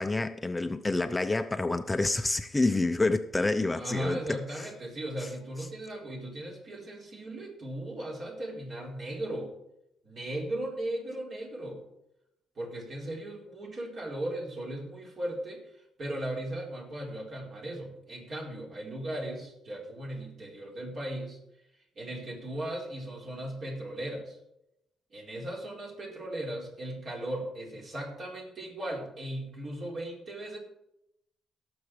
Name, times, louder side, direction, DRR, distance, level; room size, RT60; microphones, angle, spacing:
voice 1, 0.0-4.7 5.2-5.3, left 2 dB, 15° left, 0.7 m, -28 dB
voice 2, 3.8-9.5 10.0-11.8 12.6-21.4 22.0-24.4 25.1-30.6, right 1 dB, 50° right, 4.5 m, -37 dB
17.5 x 7.1 x 4.9 m
cardioid pair, 90°, 0 cm